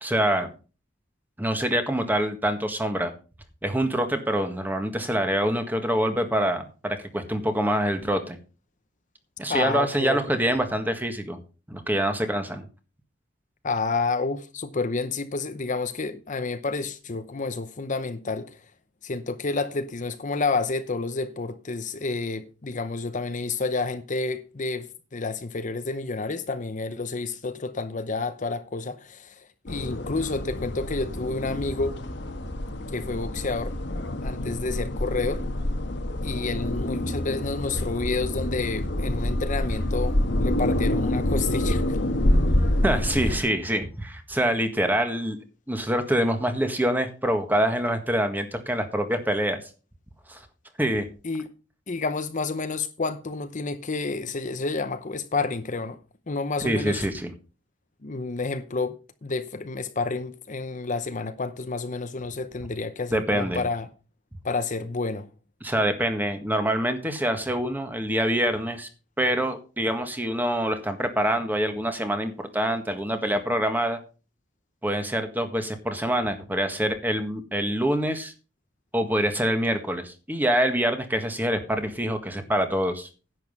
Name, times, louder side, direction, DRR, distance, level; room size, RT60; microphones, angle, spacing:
voice 1, 0.0-0.5 1.4-3.1 3.6-8.4 9.4-11.4 11.7-12.6 42.8-45.4 45.7-49.6 50.3-50.4 50.8-51.0 56.6-57.3 63.1-63.6 65.6-68.9 69.2-74.0 74.8-78.3 78.9-83.1, right 1 dB, 10° right, 1.6 m, -25 dB
voice 2, 9.5-10.2 13.6-18.6 19.0-32.0 32.9-33.8 34.2-35.4 36.2-42.0 51.2-51.5 51.9-56.0 56.3-57.1 58.0-63.9 64.4-65.3, left 3 dB, 40° left, 0.8 m, -30 dB
sound 1, 29.7-43.4, left 1 dB, 65° left, 1.4 m, -27 dB
10.5 x 7.9 x 5.3 m
head